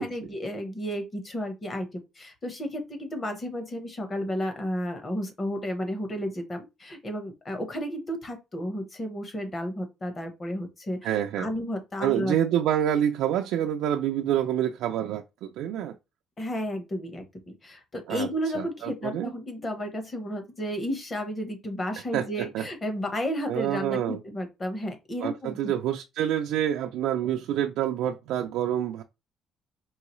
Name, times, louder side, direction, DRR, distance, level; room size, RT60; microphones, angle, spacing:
voice 1, 0.0-12.3 16.4-25.7, equal, 20° left, 1.0 m, -32 dB
voice 2, 11.0-11.5 12.0-16.0 18.1-18.3 18.5-19.3 22.1-22.7 23.5-24.2 25.2-29.0, right 10 dB, 80° right, 0.4 m, -27 dB
4.6 x 3.0 x 3.0 m
cardioid pair, 170°, 0 cm